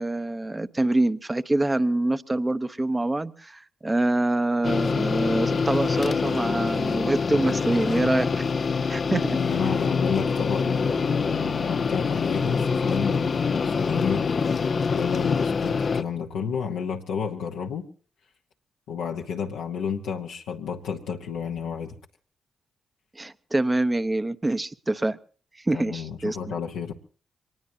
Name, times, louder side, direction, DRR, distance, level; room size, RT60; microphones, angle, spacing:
voice 1, 0.0-8.5 8.9-9.4 23.1-25.2 25.6-26.6, right 2 dB, 25° right, 12 dB, 0.9 m, -25 dB
sound 1, 4.6-16.0, left 5 dB, 55° left, 0.7 m, -25 dB
voice 2, 9.1-14.6 14.9-17.9 18.9-22.0 25.7-26.9, left 7 dB, 85° left, 0 dB, 1.1 m, -31 dB
24.0 x 20.0 x 2.8 m, 0.42 s
hypercardioid pair, 45°, 0 cm